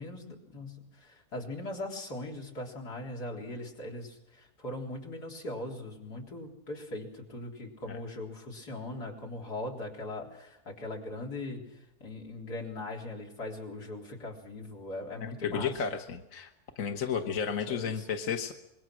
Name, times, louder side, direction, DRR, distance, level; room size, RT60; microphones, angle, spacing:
voice 1, 0.0-15.8 17.7-18.1, left 2 dB, 80° left, -1 dB, 4.5 m, -40 dB
voice 2, 15.4-16.5 16.8-18.5, left 7 dB, 55° left, 5 dB, 1.6 m, -32 dB
25.5 x 22.0 x 6.2 m, 0.91 s
omnidirectional pair, 1.7 m